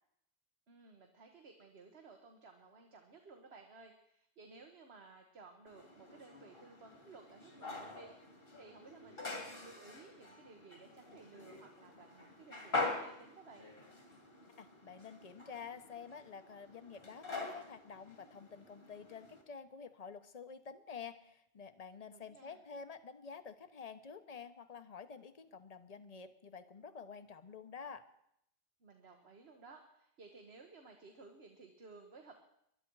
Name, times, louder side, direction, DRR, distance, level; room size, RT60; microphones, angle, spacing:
voice 1, 0.7-8.3 8.6-13.7 22.1-22.6 28.8-32.4, right 3 dB, 80° right, 3 dB, 1.6 m, -57 dB
sound 1, 5.7-19.4, left 2 dB, 65° left, 2.5 m, -45 dB
voice 2, 14.6-28.1, left 6 dB, 40° left, 11 dB, 0.9 m, -49 dB
21.0 x 12.0 x 4.7 m, 0.77 s
omnidirectional pair, 1.0 m